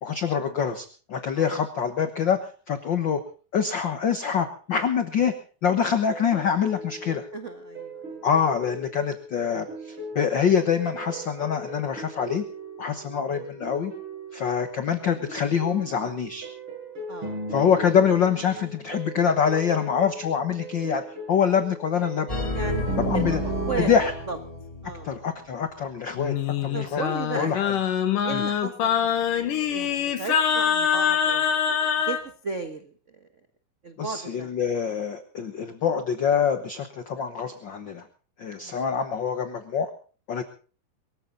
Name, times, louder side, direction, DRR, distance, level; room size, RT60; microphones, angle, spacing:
voice 1, 0.0-3.2 3.5-5.3 5.6-7.3 8.2-12.4 12.8-13.9 14.3-16.5 17.5-22.4 23.0-23.4 23.8-24.1 25.0-26.3 26.6-27.0 27.3-27.8 28.3-28.4 34.0-38.0 38.4-39.9 40.3-40.4, left 7 dB, 55° left, 8 dB, 1.3 m, -25 dB
sound 1, 6.1-24.0, right 3 dB, 35° right, 8.8 m, -38 dB
voice 2, 7.3-8.2 17.1-17.4 22.5-22.8 23.1-23.9 24.3-24.4 24.8-25.1 26.7-27.6 28.2-32.2 32.4-32.9 33.8-34.5 38.6-38.8, right 4 dB, 55° right, 7 dB, 0.8 m, -35 dB
sound 2, 22.3-25.2, left 1 dB, 10° left, 3.1 m, -31 dB
Singing, 26.2-32.2, left 8 dB, 80° left, 3.3 m, -24 dB
23.5 x 14.5 x 4.0 m, 0.40 s
omnidirectional pair, 3.7 m